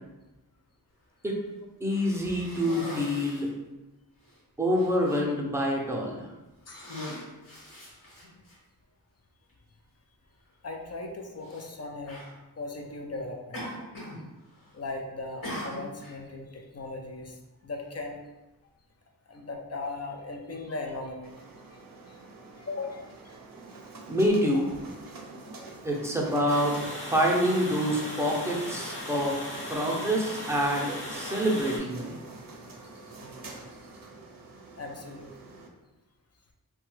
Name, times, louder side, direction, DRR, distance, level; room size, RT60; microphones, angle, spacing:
voice 1, 1.8-3.5 4.6-6.3 24.1-24.7 25.8-26.8 27.1-29.4 29.7-32.2, equal, 5° right, -2 dB, 0.6 m, -26 dB
Cough, 1.9-3.5 4.2-4.4 4.7-5.2 6.0-6.2 6.6-8.6 9.5-9.6 11.4-11.7 12.1-12.3 13.5-14.2 14.5-14.9 15.4-16.2, equal, 60° left, 1.2 m, -40 dB
voice 2, 10.6-12.2 12.6-13.7 14.7-18.2 19.3-21.3 21.7-21.8 22.1-22.2 22.6-23.4 29.8-30.0 31.2-31.6 34.7-35.6, left 3 dB, 40° left, 2 dB, 0.5 m, -38 dB
sound 1, 21.2-35.7, right 2 dB, 65° right, 0.5 m, -46 dB
Water, 26.5-31.8, left 1 dB, 85° left, 0.9 m, -38 dB
2.8 x 2.2 x 3.1 m, 1.1 s
wide cardioid pair, 50°, 37 cm